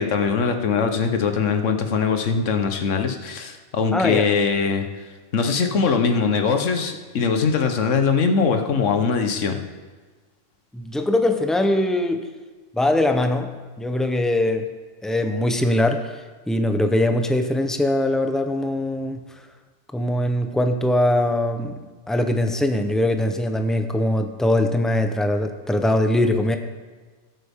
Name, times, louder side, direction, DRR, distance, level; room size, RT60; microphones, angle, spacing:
voice 1, 0.0-4.9 5.3-9.6, left 5 dB, 75° left, 6 dB, 1.3 m, -21 dB
voice 2, 3.9-4.3 10.7-12.3 12.7-14.7 15.0-19.4 19.9-26.6, left 1 dB, ahead, 6 dB, 0.5 m, -22 dB
18.5 x 8.0 x 3.6 m, 1.4 s
omnidirectional pair, 1.3 m